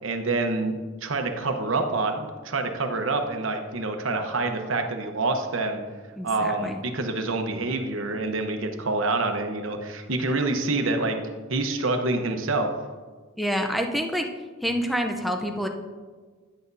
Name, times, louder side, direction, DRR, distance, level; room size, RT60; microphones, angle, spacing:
voice 1, 0.0-5.8 6.2-11.2 11.5-12.7, right 3 dB, 70° right, 5 dB, 1.0 m, -27 dB
voice 2, 6.2-6.8 13.4-14.3 14.6-15.7, equal, ahead, 3 dB, 0.6 m, -27 dB
10.0 x 8.3 x 2.7 m, 1.4 s
head